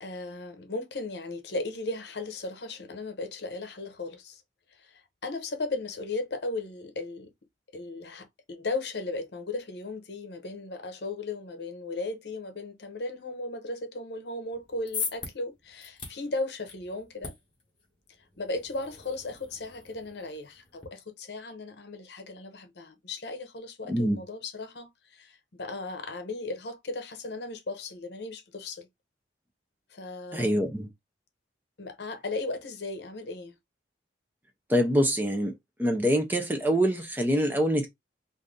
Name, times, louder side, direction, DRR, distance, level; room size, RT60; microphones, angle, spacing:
voice 1, 0.0-4.4 4.7-7.3 7.7-17.3 18.4-28.9 29.9-30.6 31.8-33.6, left 2 dB, 65° left, 0.8 m, -36 dB
sound 1, 14.5-20.9, left 5 dB, 30° left, 1.1 m, -41 dB
voice 2, 23.9-24.2 30.3-30.9 34.7-35.5 35.8-37.9, equal, 10° right, 0.6 m, -25 dB
2.6 x 2.6 x 3.6 m
head